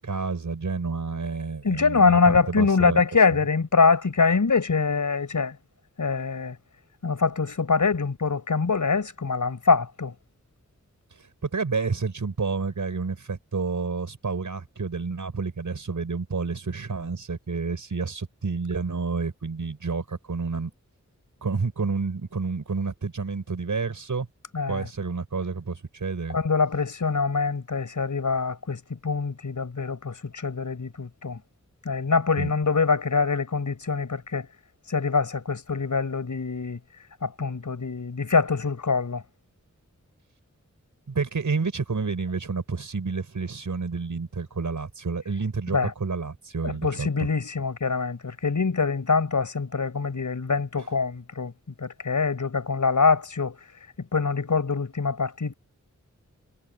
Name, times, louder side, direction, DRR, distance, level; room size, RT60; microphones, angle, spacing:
voice 1, 0.0-3.0 11.4-20.7 21.4-24.3 24.7-26.4 32.4-32.5 41.1-47.3 50.8-50.9, right 4 dB, 80° right, 5.9 m, -29 dB
voice 2, 1.6-5.5 6.0-6.6 7.0-10.1 24.5-24.9 26.3-31.4 31.8-34.5 34.9-36.8 37.2-39.2 45.7-45.9 46.6-51.5 51.8-53.5 54.1-55.5, left 4 dB, 80° left, 6.3 m, -24 dB
wide cardioid pair, 65°, 30 cm